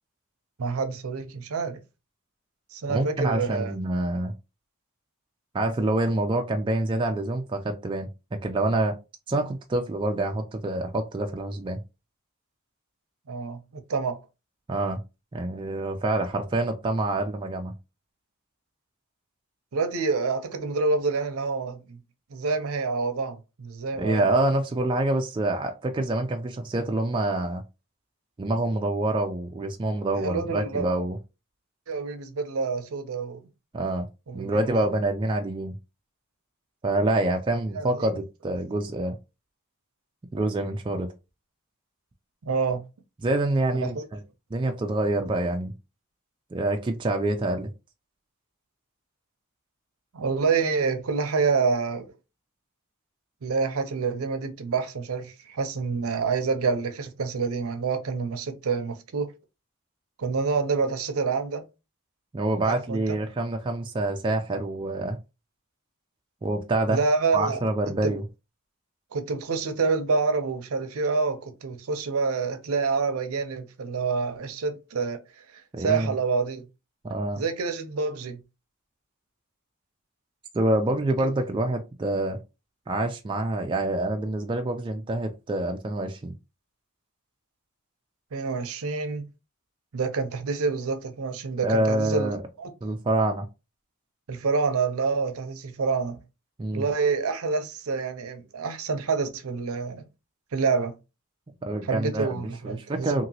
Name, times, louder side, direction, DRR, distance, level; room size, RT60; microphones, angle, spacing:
voice 1, 0.6-1.8 2.7-3.7 13.3-14.2 19.7-22.0 22.3-24.2 30.1-30.8 31.9-33.4 34.3-34.7 37.7-38.1 42.4-42.8 43.7-44.0 50.1-52.1 53.4-59.3 60.2-61.6 62.6-63.0 66.9-67.6 68.0-68.2 69.1-75.2 75.8-76.7 77.4-78.4 88.3-89.3 89.9-92.7 94.3-96.2 96.7-100.1 100.5-100.9 101.8-103.3, right 4 dB, 70° right, 0.6 m, -27 dB
voice 2, 2.9-4.3 5.5-8.9 9.3-11.8 14.7-15.0 15.3-17.7 24.0-27.6 28.4-31.2 33.7-34.1 34.3-35.8 36.8-39.2 40.3-41.1 43.2-44.2 44.5-45.7 46.5-47.7 62.3-65.2 66.4-67.0 67.3-68.2 75.7-76.2 77.0-77.4 80.5-82.4 82.9-86.3 91.6-92.4 92.8-93.5 96.6-96.9 101.6-103.2, right 2 dB, 20° right, 0.3 m, -26 dB
2.9 x 2.8 x 2.7 m
head